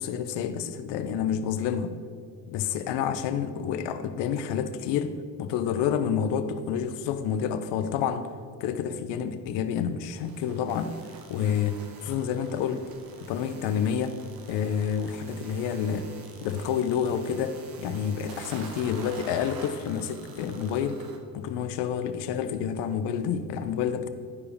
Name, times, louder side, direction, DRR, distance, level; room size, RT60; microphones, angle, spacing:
voice 1, 0.0-1.9 2.5-8.3 8.6-11.0 11.3-12.8 13.3-14.2 14.5-16.1 16.4-21.0 21.3-24.1, left 8 dB, 75° left, 11 dB, 0.8 m, -29 dB
sound 1, 10.1-21.2, right 4 dB, 55° right, 1.3 m, -47 dB
11.0 x 4.8 x 5.0 m, 2.1 s
supercardioid pair, 75°, 42 cm